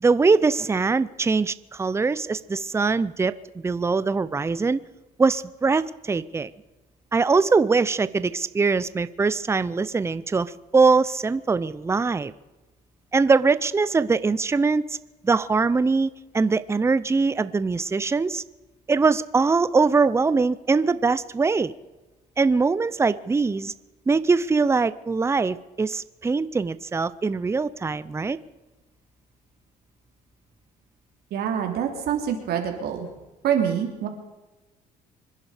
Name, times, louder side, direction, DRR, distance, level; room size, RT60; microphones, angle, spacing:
voice 1, 0.0-3.3 3.6-4.8 5.2-6.5 7.1-12.3 13.1-15.0 15.2-18.4 18.9-21.7 22.4-23.7 24.1-28.4, right 4 dB, 15° right, 15 dB, 0.6 m, -22 dB
voice 2, 31.3-33.1 33.4-34.1, right 8 dB, 70° right, 3 dB, 3.2 m, -25 dB
25.5 x 11.0 x 5.1 m, 1.1 s
cardioid pair, 110°, 17 cm